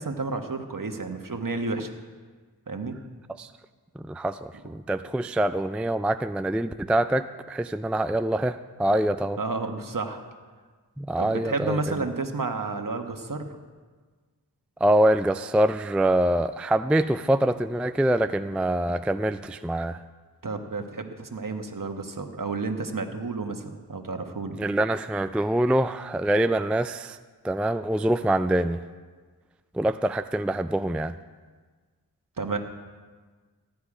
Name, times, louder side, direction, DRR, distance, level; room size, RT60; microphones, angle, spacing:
voice 1, 0.0-1.9 2.7-3.0 9.4-10.2 11.2-13.6 20.4-24.7 32.4-32.6, right 3 dB, 55° right, 5 dB, 1.3 m, -31 dB
voice 2, 4.0-9.4 11.0-12.0 14.8-20.0 24.6-27.2 27.4-28.8 29.7-31.1, right 1 dB, 5° right, 11 dB, 0.3 m, -25 dB
15.0 x 10.5 x 4.9 m, 1.4 s
wide cardioid pair, 50°, 40 cm